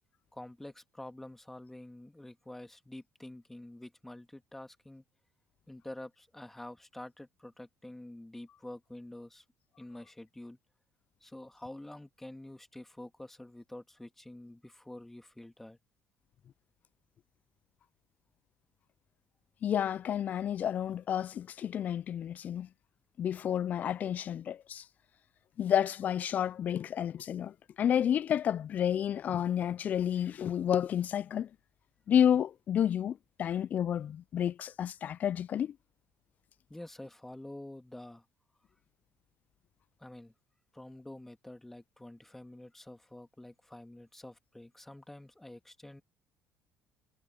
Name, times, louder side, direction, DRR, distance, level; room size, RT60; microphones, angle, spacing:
voice 1, 0.3-5.0 5.7-9.4 9.8-10.6 11.2-15.8 36.7-38.2 40.0-40.3 40.7-46.0, left 1 dB, 10° left, 2.6 m, -48 dB
voice 2, 19.6-22.7 23.2-24.8 25.6-31.5 32.1-35.8, left 9 dB, 50° left, 0.4 m, -30 dB
supercardioid pair, 90°, 4 cm